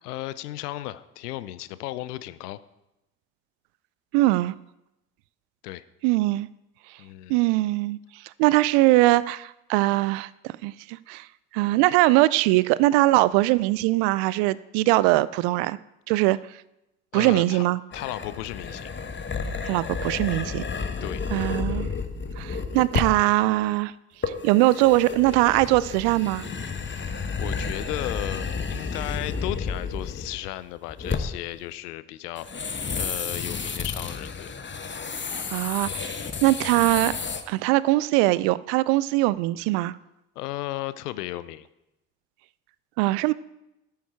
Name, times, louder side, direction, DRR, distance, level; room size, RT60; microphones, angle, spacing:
voice 1, 0.0-2.6 5.6-5.8 7.0-7.4 17.1-17.6 17.9-18.9 21.0-21.2 26.9-27.0 27.4-34.5 40.4-41.7, left 15 dB, 80° left, 16 dB, 0.6 m, -35 dB
voice 2, 4.1-4.5 6.0-6.5 7.3-8.0 8.4-11.3 11.5-15.8 16.1-16.4 17.1-17.8 19.6-20.6 21.3-21.9 22.4-23.9 24.4-26.5 35.5-37.1 37.5-40.0 43.0-43.3, right 18 dB, 65° right, 20 dB, 0.5 m, -21 dB
sound 1, 17.9-23.3 24.2-30.6 30.9-31.5 32.4-37.4, left 5 dB, 25° left, 1.2 m, -31 dB
13.5 x 7.1 x 4.7 m, 0.90 s
figure-of-eight pair, 50°, 46 cm